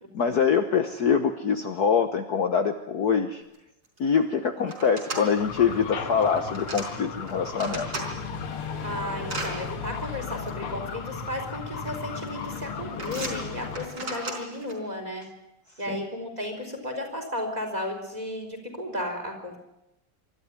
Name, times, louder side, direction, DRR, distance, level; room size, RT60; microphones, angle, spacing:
voice 1, 0.1-3.4 4.0-7.9 15.9-16.0, left 6 dB, 55° left, 6 dB, 1.5 m, -24 dB
sound 1, 3.5-3.6 3.8-4.2 4.7-5.2 6.2-6.9 7.3-8.1 8.6-9.5 10.5-10.6 11.5-11.9 12.2-12.6 13.0-14.7, right 2 dB, 45° right, 5.1 m, -36 dB
sound 2, 5.4-13.9, left 5 dB, 80° left, 2.5 m, -35 dB
voice 2, 8.8-15.2 15.8-19.6, left 1 dB, 20° right, 3 dB, 4.3 m, -34 dB
25.0 x 13.5 x 9.6 m, 0.90 s
omnidirectional pair, 2.4 m